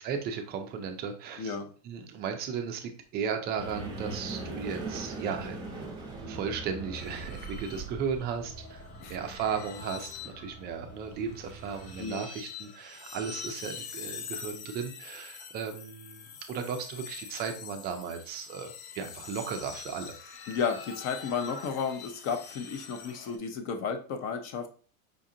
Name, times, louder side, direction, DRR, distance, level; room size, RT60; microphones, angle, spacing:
voice 1, 0.0-1.6 1.8-5.9 6.3-20.1, right 6 dB, 25° right, 5 dB, 0.4 m, -36 dB
voice 2, 1.4-1.7 9.0-9.2 12.0-12.2 20.5-24.7, left 6 dB, 40° left, 7 dB, 0.7 m, -33 dB
sound 1, 3.5-12.1, right 3 dB, 10° right, 0.9 m, -41 dB
sound 2, 6.9-23.4, left 6 dB, 85° left, 0.8 m, -45 dB
5.1 x 2.4 x 2.7 m, 0.40 s
supercardioid pair, 130°, 43 cm